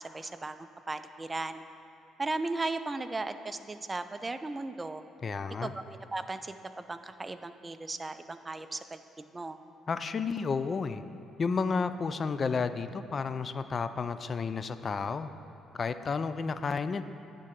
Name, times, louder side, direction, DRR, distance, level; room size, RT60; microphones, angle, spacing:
voice 1, 0.0-1.6 2.2-5.0 5.6-9.6, right 2 dB, 25° right, 10 dB, 0.4 m, -36 dB
voice 2, 5.2-5.7 9.9-11.0 11.4-15.3 15.7-17.0, left 5 dB, 45° left, 11 dB, 0.4 m, -31 dB
10.5 x 3.8 x 7.4 m, 2.7 s
supercardioid pair, 70°, 0 cm